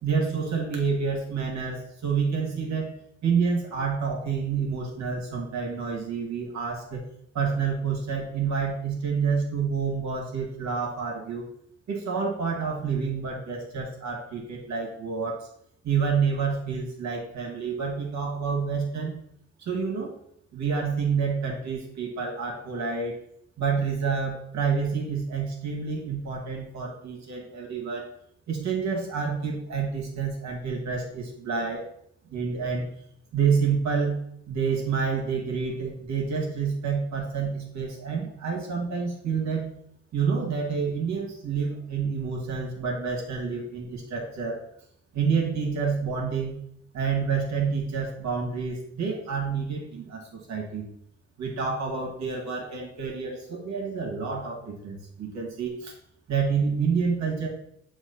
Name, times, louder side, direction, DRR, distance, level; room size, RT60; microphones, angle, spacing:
voice 1, 0.0-2.9 3.2-7.0 7.3-11.5 11.9-15.5 15.8-19.1 19.6-20.1 20.5-23.2 23.6-28.1 28.5-31.9 32.3-32.9 33.3-34.2 34.5-39.7 40.1-44.6 45.1-46.5 46.9-50.9 51.4-55.9 56.3-57.5, right 5 dB, 65° right, 0 dB, 2.1 m, -28 dB
7.1 x 3.1 x 4.2 m, 0.70 s
cardioid pair, 90°, 30 cm